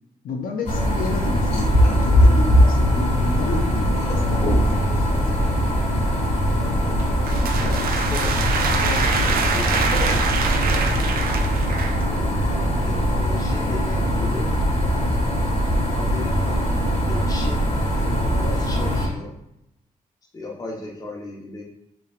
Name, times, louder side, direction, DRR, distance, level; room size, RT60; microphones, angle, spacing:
voice 1, 0.2-5.8, left 4 dB, 75° left, 2 dB, 0.6 m, -30 dB
sound 1, 0.7-19.1, equal, 45° left, 1.3 m, -21 dB
sound 2, 7.0-12.1, right 5 dB, 90° right, 0.5 m, -25 dB
voice 2, 7.5-8.4 8.7-11.3 12.1-14.6 15.9-16.7 17.1-17.7 18.0-19.3 20.3-21.6, left 2 dB, 25° left, -2 dB, 1.0 m, -36 dB
5.8 x 3.3 x 2.4 m, 0.83 s
wide cardioid pair, 155°, 15 cm